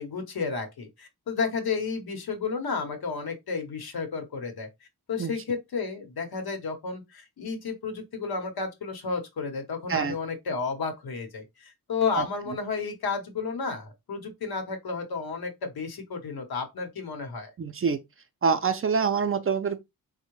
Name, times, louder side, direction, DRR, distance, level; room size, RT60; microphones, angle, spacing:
voice 1, 0.0-4.7 5.1-17.5, left 5 dB, 90° left, 0.9 m, -32 dB
voice 2, 17.6-18.0 18.4-19.8, right 5 dB, 40° right, 0.4 m, -25 dB
3.5 x 2.1 x 3.0 m
wide cardioid pair, 120°, 36 cm